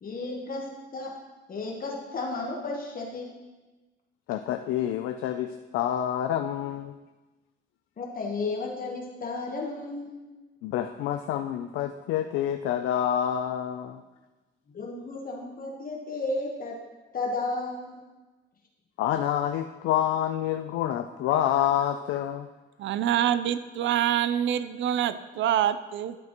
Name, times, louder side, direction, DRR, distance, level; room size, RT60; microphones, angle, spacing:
voice 1, 0.0-1.1 1.5-3.3 8.0-10.2 14.7-16.8 17.1-18.0, left 3 dB, 45° left, 0 dB, 1.2 m, -33 dB
voice 2, 4.3-7.0 10.6-14.0 19.0-22.5, left 10 dB, 90° left, 7 dB, 0.4 m, -28 dB
voice 3, 22.8-26.2, right 10 dB, 70° right, 13 dB, 0.5 m, -26 dB
11.5 x 5.9 x 3.0 m, 1.2 s
cardioid pair, 90°, 20 cm